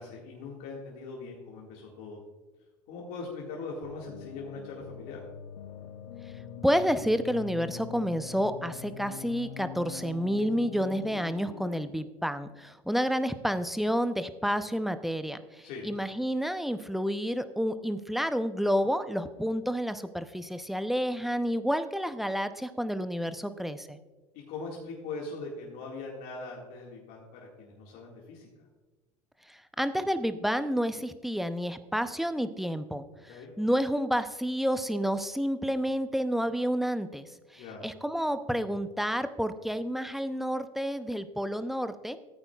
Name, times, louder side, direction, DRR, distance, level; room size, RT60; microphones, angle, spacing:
voice 1, 0.0-2.2 2.9-5.2 15.6-15.9 24.3-28.5 33.3-33.5 37.6-37.9, left 3 dB, 60° left, -2 dB, 2.0 m, -41 dB
sound 1, 3.8-11.8, left 8 dB, 80° left, 0.8 m, -44 dB
voice 2, 6.6-24.0 29.5-37.3 37.5-42.2, equal, ahead, 11 dB, 0.6 m, -30 dB
15.0 x 8.7 x 2.4 m, 1.2 s
hypercardioid pair, 80°, 17 cm